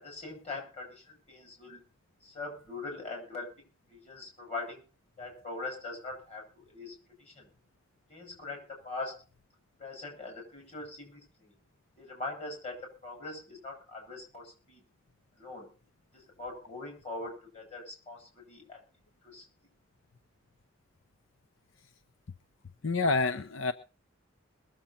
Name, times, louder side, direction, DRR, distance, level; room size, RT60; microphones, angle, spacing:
voice 1, 0.0-1.8 2.2-3.5 3.9-4.8 5.2-7.5 8.1-9.2 9.8-11.5 12.0-14.8 15.4-15.7 16.1-18.8 19.2-19.4, left 3 dB, 30° left, 1 dB, 7.3 m, -42 dB
voice 2, 22.8-23.7, left 3 dB, 75° left, 12 dB, 0.7 m, -27 dB
21.5 x 7.7 x 5.7 m, 0.34 s
head